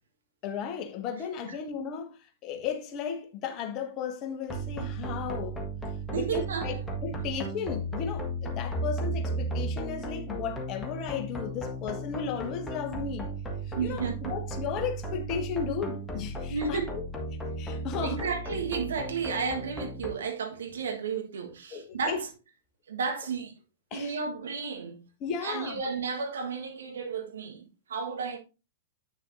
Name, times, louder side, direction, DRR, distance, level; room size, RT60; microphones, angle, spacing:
voice 1, 0.4-5.6 6.1-13.3 13.7-17.0 17.6-18.2 21.7-22.2 23.9-24.2 25.2-25.8, left 7 dB, 35° left, 1.2 m, -35 dB
sound 1, 4.5-20.1, right 1 dB, 10° left, 1.5 m, -35 dB
voice 2, 6.1-6.8 13.7-14.3 16.5-17.0 18.0-22.3 22.9-23.6 23.9-25.0 25.4-28.4, right 5 dB, 65° right, 1.5 m, -33 dB
8.9 x 6.4 x 2.6 m
figure-of-eight pair, 105°, 0 cm